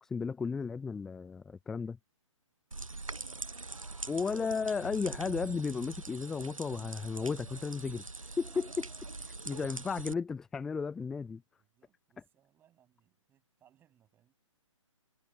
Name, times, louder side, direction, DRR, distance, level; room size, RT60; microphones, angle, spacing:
voice 1, 0.0-2.0 4.1-8.9 9.5-11.4, left 5 dB, 5° left, 0.3 m, -34 dB
voice 2, 2.7-4.5 8.8-9.2 11.6-14.3, right 10 dB, 15° right, 7.8 m, -69 dB
sound 1, 2.7-10.1, right 3 dB, 90° right, 0.6 m, -43 dB
figure-of-eight pair, 135°, 17 cm